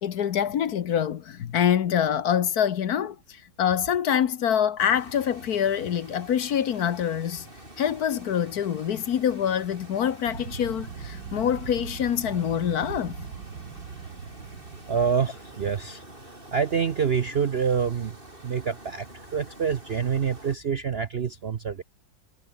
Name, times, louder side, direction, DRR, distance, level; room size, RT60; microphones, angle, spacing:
voice 1, 0.0-7.5 7.8-13.3, left 9 dB, 60° left, 1.4 m, -25 dB
sound 1, 4.8-20.6, right 1 dB, 30° right, 7.7 m, -47 dB
sound 2, 10.2-16.0, right 6 dB, 70° right, 2.6 m, -40 dB
voice 2, 14.9-16.0 16.5-18.1 18.4-19.1 19.3-21.8, right 6 dB, 50° right, 0.7 m, -26 dB
omnidirectional pair, 1.9 m